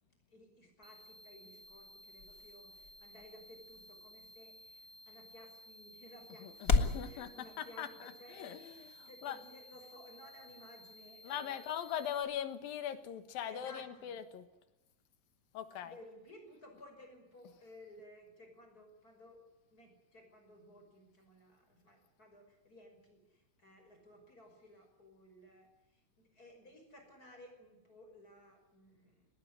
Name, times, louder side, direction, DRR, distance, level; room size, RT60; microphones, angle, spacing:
voice 1, 0.3-11.9 13.4-14.1 15.8-19.4 19.7-29.3, left 1 dB, 25° left, 4 dB, 6.1 m, -57 dB
sound 1, 0.8-7.0, left 4 dB, 45° left, 1.1 m, -38 dB
sound 2, 0.8-12.2, left 1 dB, 10° right, 1.5 m, -57 dB
voice 2, 6.3-9.4 11.2-14.5 15.6-16.0, left 9 dB, 85° left, 11 dB, 3.4 m, -41 dB
20.0 x 18.5 x 9.8 m, 0.97 s
omnidirectional pair, 4.0 m